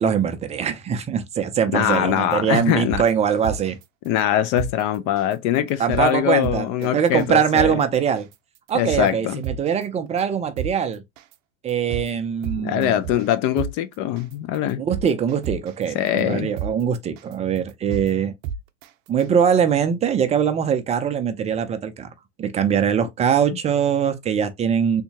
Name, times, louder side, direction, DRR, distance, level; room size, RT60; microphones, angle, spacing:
voice 1, 0.0-3.8 5.8-8.3 8.7-11.0 11.6-12.9 14.8-18.3 19.1-22.1 22.4-25.0, right 7 dB, 15° right, 0.4 m, -22 dB
voice 2, 1.7-3.0 4.0-7.8 8.7-9.4 12.6-14.8 15.9-16.5, left 11 dB, 45° left, 0.5 m, -22 dB
sound 1, 2.2-2.3 2.7-3.8 4.2-4.3 4.6-4.7 5.2-5.3 5.7-6.1 6.4-6.9 7.2-7.3 7.6-7.7 8.2-8.3 8.7-9.8 10.2-10.3 10.6-10.7 11.2-11.3 11.7-12.1 12.4-13.3 13.6-13.7 14.2-14.3 14.7-15.8 16.2-16.3 16.6-16.7 17.2-17.3 17.7-18.1 18.4-18.9 19.2-19.3, right 7 dB, 70° right, 0.6 m, -30 dB
3.6 x 2.8 x 2.7 m
hypercardioid pair, 115°, 40 cm